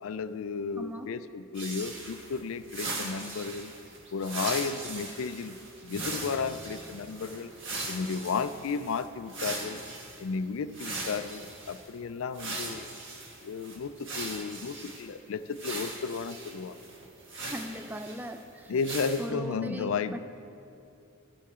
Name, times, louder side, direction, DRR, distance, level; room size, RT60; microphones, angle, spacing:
voice 1, 0.0-3.7 4.1-5.6 5.8-7.5 7.9-9.8 10.2-12.9 13.4-16.8 18.7-20.2, left 5 dB, 70° left, 13 dB, 0.4 m, -33 dB
voice 2, 0.8-1.1 17.5-18.7 19.2-20.2, equal, 10° right, 8 dB, 0.4 m, -39 dB
sound 1, 1.5-10.2 10.7-11.9 12.3-15.0 15.5-18.4 18.8-19.3, right 2 dB, 60° right, 1.5 m, -39 dB
sound 2, 5.9-8.6, left 1 dB, 50° left, 0.8 m, -49 dB
12.5 x 8.5 x 3.7 m, 2.6 s
head